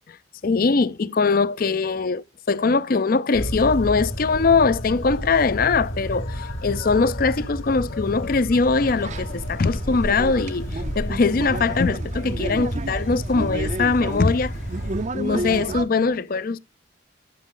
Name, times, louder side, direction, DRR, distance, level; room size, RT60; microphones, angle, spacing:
voice 1, 0.4-14.5 15.1-16.6, left 4 dB, 45° left, 0.5 m, -21 dB
sound 1, 3.3-15.0, equal, 85° left, 2.7 m, -31 dB
sound 2, 8.8-15.8, right 2 dB, 35° right, 0.5 m, -32 dB
12.5 x 6.5 x 3.8 m
head